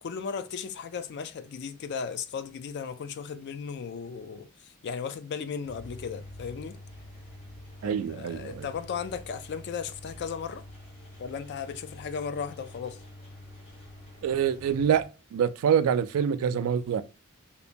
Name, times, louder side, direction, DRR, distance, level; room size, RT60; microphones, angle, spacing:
voice 1, 0.0-6.8 7.8-10.6 11.2-13.0, left 6 dB, 55° left, 0.3 m, -36 dB
Engine, 5.6-15.0, left 1 dB, 30° left, 1.1 m, -47 dB
voice 2, 7.8-8.7 14.2-15.1 15.3-17.0, right 8 dB, 90° right, 0.3 m, -25 dB
2.8 x 2.1 x 2.5 m
head